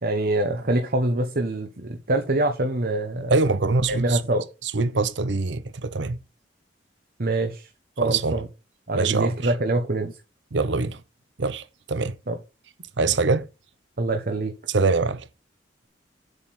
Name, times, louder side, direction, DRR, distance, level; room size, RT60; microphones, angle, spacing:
voice 1, 0.0-3.4 3.9-4.4 7.2-7.7 8.0-8.5 8.9-10.2 12.3-12.4 14.0-14.5, right 2 dB, 55° right, 1.1 m, -25 dB
voice 2, 3.3-4.2 4.7-6.2 8.0-8.4 8.9-9.3 10.5-11.0 11.4-12.1 13.0-13.4 14.7-15.3, right 3 dB, 70° right, 0.7 m, -23 dB
8.1 x 7.6 x 4.2 m
head